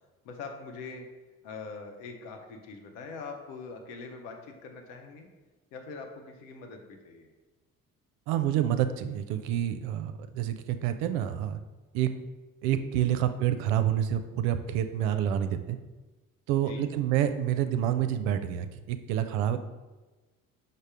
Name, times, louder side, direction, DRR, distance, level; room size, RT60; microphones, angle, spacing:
voice 1, 0.2-1.1 1.4-5.3 5.7-7.3 16.6-16.8, left 4 dB, 70° left, 4 dB, 0.8 m, -43 dB
voice 2, 8.3-11.6 11.9-12.1 12.6-15.8 16.5-19.6, right 10 dB, 65° right, 10 dB, 0.5 m, -28 dB
5.3 x 2.1 x 4.8 m, 1.2 s
figure-of-eight pair, 50°, 41 cm